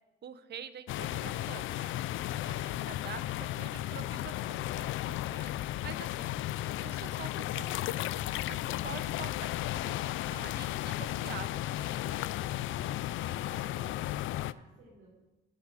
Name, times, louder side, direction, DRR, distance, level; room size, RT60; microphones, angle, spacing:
voice 1, 0.2-1.9 2.5-6.3 6.8-12.2, right 8 dB, 55° right, 12 dB, 1.1 m, -47 dB
sound 1, 0.9-14.5, left 14 dB, 80° left, 0.4 m, -34 dB
voice 2, 2.1-2.5 13.3-15.1, right 2 dB, 90° right, -5 dB, 4.5 m, -56 dB
14.5 x 8.9 x 7.9 m, 1.1 s
cardioid pair, 90°, 20 cm